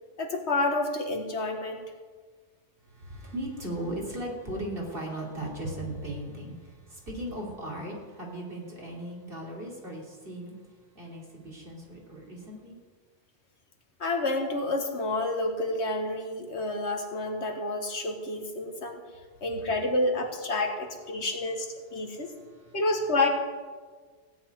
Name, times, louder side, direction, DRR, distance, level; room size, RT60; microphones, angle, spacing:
voice 1, 0.2-1.9 14.0-19.0 19.4-22.3 22.7-23.3, left 2 dB, 70° left, 3 dB, 1.9 m, -29 dB
voice 2, 2.9-10.5 10.9-12.8, right 1 dB, 50° right, -2 dB, 3.4 m, -37 dB
16.5 x 6.0 x 9.4 m, 1.5 s
omnidirectional pair, 1.2 m